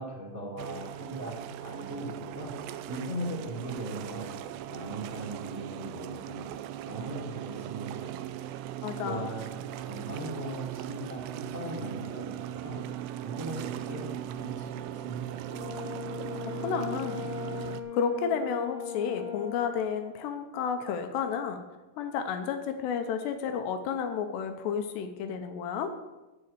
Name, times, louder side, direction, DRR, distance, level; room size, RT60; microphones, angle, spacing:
voice 1, 0.0-2.5 2.9-4.3 4.7-6.6 6.8-8.1 9.0-12.8 13.2-15.5, right 1 dB, 5° right, -4 dB, 1.6 m, -39 dB
sound 1, 0.6-17.8, right 12 dB, 80° right, 2.5 m, -39 dB
voice 2, 8.8-9.3 16.6-17.2 17.9-21.6 22.0-25.9, left 7 dB, 80° left, 7 dB, 2.8 m, -31 dB
Brass instrument, 15.5-19.6, left 7 dB, 60° left, 2.1 m, -38 dB
13.5 x 4.9 x 8.2 m, 1.1 s
omnidirectional pair, 5.1 m